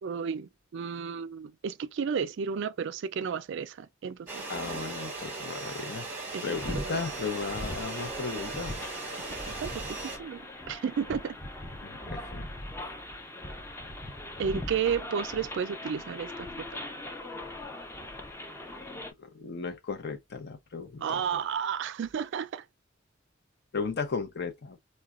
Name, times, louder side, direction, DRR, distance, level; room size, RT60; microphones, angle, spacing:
voice 1, 0.0-4.5 6.3-7.0 9.6-10.4 10.7-11.4 14.4-16.8 21.0-22.6, right 7 dB, 65° right, 0.4 m, -32 dB
sound 1, 4.3-10.2, right 3 dB, 10° right, 0.9 m, -38 dB
voice 2, 4.5-6.1 6.4-8.7 11.8-12.5 18.8-21.2 23.7-24.8, left 4 dB, 55° left, 0.6 m, -36 dB
sound 2, 6.5-19.1, left 1 dB, 10° left, 0.5 m, -40 dB
3.9 x 2.2 x 2.3 m
head